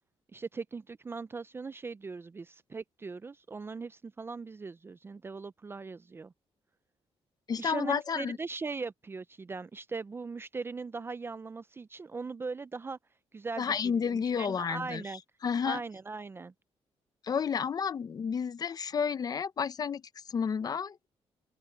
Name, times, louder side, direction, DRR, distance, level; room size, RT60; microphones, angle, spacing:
voice 1, 0.3-6.3 7.6-13.0 13.3-13.7 14.0-15.2 15.6-16.5, right 4 dB, 20° right, 0.4 m, -39 dB
voice 2, 7.5-8.4 13.6-15.0 15.4-15.8 17.2-20.0 20.3-21.1, left 6 dB, 35° left, 0.6 m, -31 dB
open air
cardioid pair, 150°, 11 cm